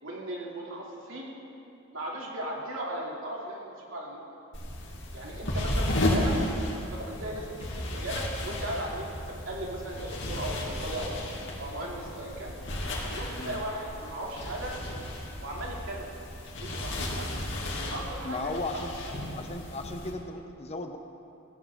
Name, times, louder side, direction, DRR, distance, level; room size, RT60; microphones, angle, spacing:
voice 1, 0.0-1.3 1.9-4.2 5.1-6.3 6.9-11.2 11.6-12.5 13.1-14.7 15.4-16.1 16.6-17.3 17.9-19.1, right 1 dB, 70° right, -3 dB, 2.8 m, -37 dB
sound 1, 4.5-20.1, left 1 dB, 65° left, 2.5 m, -34 dB
voice 2, 18.2-18.9 19.3-21.0, left 2 dB, 30° left, 5 dB, 0.9 m, -35 dB
18.0 x 16.0 x 3.7 m, 2.8 s
head